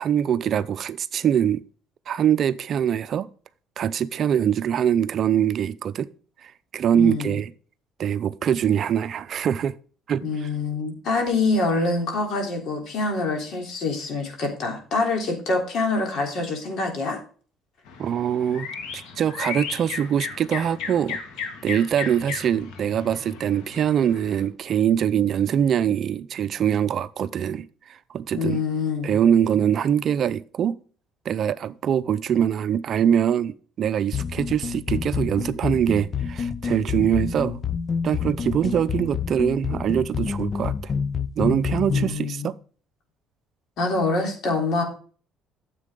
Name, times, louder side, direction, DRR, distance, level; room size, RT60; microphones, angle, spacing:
voice 1, 0.0-1.6 2.1-3.3 3.8-6.1 6.4-7.5 8.0-9.7 10.1-10.5 18.0-18.7 18.9-27.7 28.1-28.6 29.0-30.8 31.2-37.6 38.0-40.9 41.4-42.5, right 9 dB, 50° right, 0.5 m, -23 dB
voice 2, 6.9-7.3 10.2-17.2 28.3-29.1 41.9-42.5 43.8-44.8, left 3 dB, 60° left, 3.5 m, -25 dB
sound 1, 17.9-24.5, left 6 dB, 85° left, 2.0 m, -35 dB
sound 2, 34.1-42.1, left 6 dB, 40° left, 0.6 m, -28 dB
9.8 x 7.5 x 3.7 m
cardioid pair, 105°, 0 cm